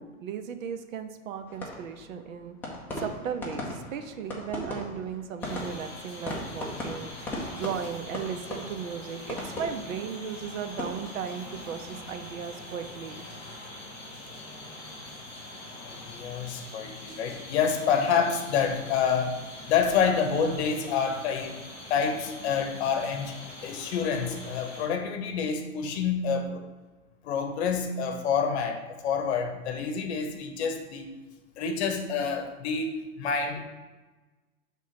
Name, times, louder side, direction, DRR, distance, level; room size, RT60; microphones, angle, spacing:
voice 1, 0.0-13.2, right 7 dB, 75° right, 8 dB, 0.8 m, -36 dB
sound 1, 1.5-12.6 12.9-13.4, left 1 dB, 5° left, 0.6 m, -39 dB
sound 2, 5.4-24.9, left 2 dB, 25° left, 2.2 m, -43 dB
voice 2, 15.8-19.4 19.7-21.6 21.9-23.3 23.6-26.6 27.2-31.1 31.6-33.7, left 6 dB, 55° left, 6 dB, 1.0 m, -28 dB
6.3 x 3.7 x 5.8 m, 1.2 s
supercardioid pair, 160°, 40 cm